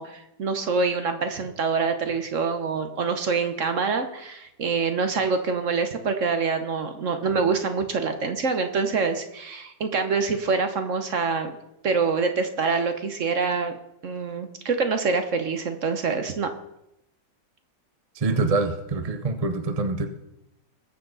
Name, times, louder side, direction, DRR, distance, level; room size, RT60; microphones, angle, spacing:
voice 1, 0.0-11.6 11.8-13.7 14.0-16.5, right 4 dB, 50° right, 7 dB, 1.3 m, -25 dB
voice 2, 18.1-20.1, right 3 dB, 30° right, 7 dB, 0.7 m, -25 dB
20.5 x 7.4 x 4.0 m, 0.86 s
omnidirectional pair, 1.8 m